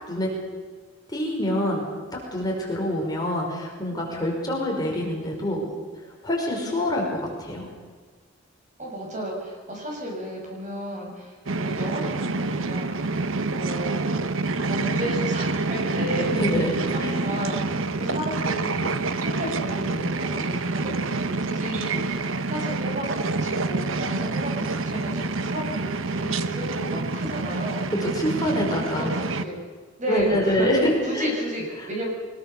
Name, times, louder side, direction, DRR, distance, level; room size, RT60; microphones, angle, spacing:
voice 1, 1.1-5.6 6.0-7.7 16.3-16.7 17.0-17.2 28.0-29.1 30.1-31.3 31.8-31.9, left 1 dB, 20° left, -2 dB, 5.3 m, -26 dB
voice 2, 8.8-13.0 13.5-14.1 14.6-16.6 16.9-18.9 19.1-27.8 29.1-29.6 30.0-30.7 31.0-32.1, equal, 35° right, -1 dB, 6.5 m, -33 dB
sound 1, 11.5-29.4, right 3 dB, 75° right, 1.0 m, -27 dB
23.5 x 21.0 x 6.8 m, 1.5 s
head